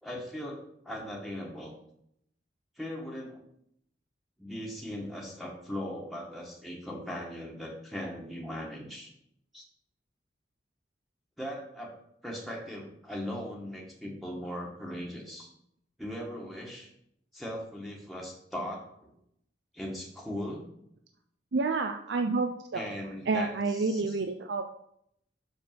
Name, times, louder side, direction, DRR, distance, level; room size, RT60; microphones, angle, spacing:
voice 1, 0.0-1.7 2.8-3.4 4.4-9.1 9.5-9.6 11.4-12.0 12.2-15.5 16.0-16.9 17.3-19.1 19.7-20.6 22.7-24.2, equal, ahead, -3 dB, 1.4 m, -39 dB
voice 2, 21.5-22.8 23.3-24.7, right 3 dB, 75° right, 6 dB, 0.5 m, -29 dB
6.1 x 5.3 x 5.8 m, 0.74 s
head